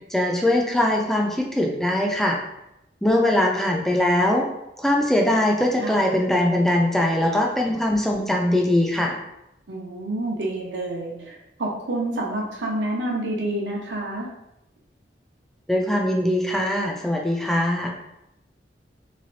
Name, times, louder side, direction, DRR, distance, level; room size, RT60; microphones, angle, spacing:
voice 1, 0.1-2.4 3.0-4.5 4.8-9.2 15.7-17.9, left 1 dB, ahead, 0 dB, 0.3 m, -21 dB
voice 2, 9.7-14.3, right 1 dB, 90° right, -1 dB, 0.8 m, -28 dB
3.2 x 3.1 x 2.6 m, 0.85 s
head